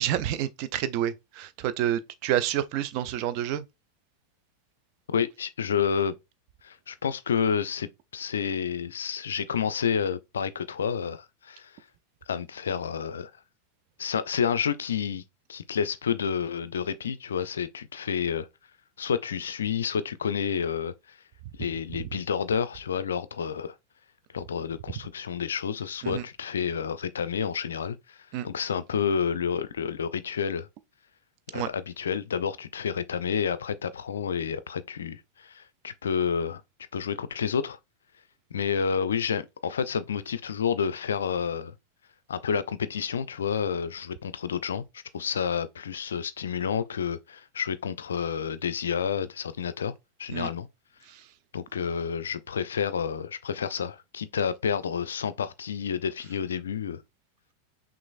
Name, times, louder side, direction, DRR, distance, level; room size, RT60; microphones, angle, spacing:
voice 1, 0.0-3.6 26.0-26.2 28.3-28.5 31.5-31.7 50.3-50.5 51.1-51.3, right 11 dB, 45° right, 0.4 m, -29 dB
voice 2, 5.1-6.2 6.6-11.7 12.3-13.3 14.0-15.2 15.5-18.5 19.0-21.2 21.5-23.8 24.3-28.2 28.4-30.7 31.5-36.6 36.9-37.8 38.5-41.7 42.3-49.9 50.2-50.7 51.5-57.0, left 7 dB, 65° left, 0.4 m, -29 dB
6.0 x 2.4 x 2.4 m
figure-of-eight pair, 90°, 0 cm